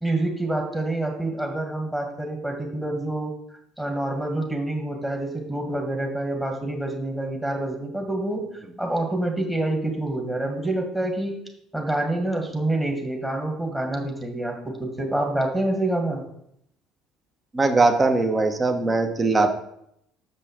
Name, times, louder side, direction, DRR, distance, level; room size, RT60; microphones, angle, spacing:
voice 1, 0.0-3.3 3.8-8.4 8.8-11.3 11.7-16.2, right 1 dB, 10° right, 1 dB, 2.0 m, -27 dB
voice 2, 17.5-19.5, right 3 dB, 25° right, 7 dB, 1.1 m, -20 dB
6.8 x 5.5 x 5.1 m, 0.74 s
figure-of-eight pair, 60°, 0 cm